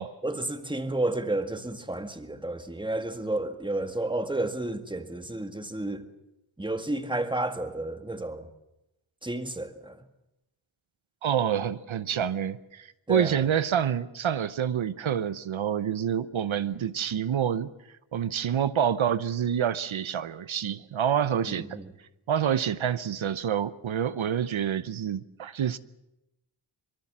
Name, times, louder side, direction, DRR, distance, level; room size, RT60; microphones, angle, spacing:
voice 1, 0.2-6.0 6.6-8.5 9.2-10.0 13.1-13.4 21.5-21.9, right 2 dB, 10° right, 1.9 m, -31 dB
voice 2, 11.2-17.7 18.1-21.8 22.3-25.8, right 9 dB, 75° right, 0.9 m, -27 dB
24.5 x 23.5 x 7.4 m
wide cardioid pair, 125°, 47 cm